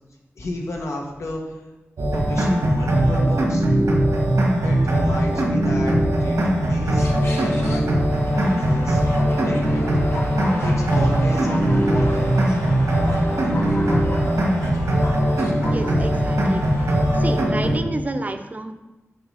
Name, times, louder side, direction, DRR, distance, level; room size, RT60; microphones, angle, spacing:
voice 1, 0.4-1.6 2.1-3.6 4.6-7.8 8.3-9.0 9.4-9.9 10.6-12.3, left 1 dB, 85° left, 0 dB, 1.3 m, -32 dB
sound 1, 2.0-17.8, right 1 dB, 90° right, 1.5 m, -20 dB
sound 2, 6.8-17.4, left 1 dB, 60° left, 1.0 m, -33 dB
voice 2, 15.7-16.6 17.1-18.7, right 2 dB, 35° right, 7 dB, 0.6 m, -29 dB
6.6 x 3.8 x 5.6 m, 1.0 s
wide cardioid pair, 100°, 5 cm